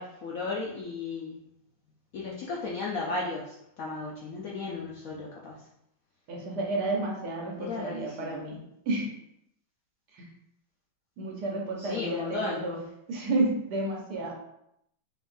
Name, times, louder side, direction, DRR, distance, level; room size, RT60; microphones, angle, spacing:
voice 1, 0.0-1.4 2.1-5.6 7.6-8.4 11.8-12.7, left 3 dB, 70° left, -4 dB, 0.8 m, -35 dB
voice 2, 6.3-8.6 8.9-9.1 11.2-12.8 13.1-14.3, right 2 dB, 65° right, -1 dB, 1.4 m, -31 dB
3.9 x 3.6 x 2.6 m, 0.77 s
omnidirectional pair, 2.1 m